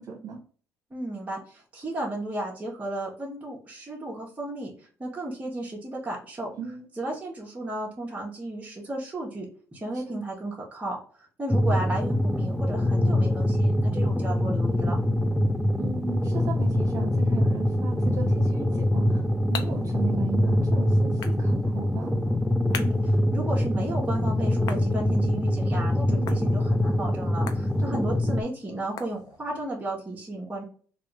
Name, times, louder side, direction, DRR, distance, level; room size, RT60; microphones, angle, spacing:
voice 1, 0.1-0.4 6.5-6.9 9.9-10.2 15.8-19.2 19.5-22.1 26.1-26.5 27.8-28.0, right 6 dB, 55° right, -2 dB, 1.1 m, -36 dB
voice 2, 0.9-4.7 5.0-6.5 6.9-15.0 22.7-30.6, right 1 dB, 20° right, -4 dB, 1.3 m, -34 dB
sound 1, 11.5-28.4, left 1 dB, ahead, 0.4 m, -24 dB
sound 2, 18.8-29.7, left 8 dB, 70° left, 0.5 m, -44 dB
3.3 x 2.6 x 3.2 m, 0.42 s
cardioid pair, 85°, 7 cm